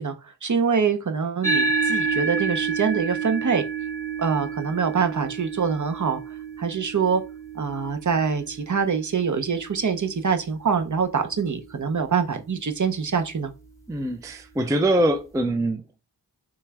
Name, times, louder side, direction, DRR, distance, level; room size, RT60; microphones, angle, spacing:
voice 1, 0.0-3.6 4.2-6.2 6.6-7.2 7.5-13.5, right 6 dB, 45° right, 0.6 m, -24 dB
sound 1, 1.4-10.2, right 4 dB, 5° left, 1.1 m, -29 dB
voice 2, 13.9-16.0, right 1 dB, 10° right, 0.3 m, -24 dB
3.4 x 3.1 x 3.4 m
wide cardioid pair, 60°, 44 cm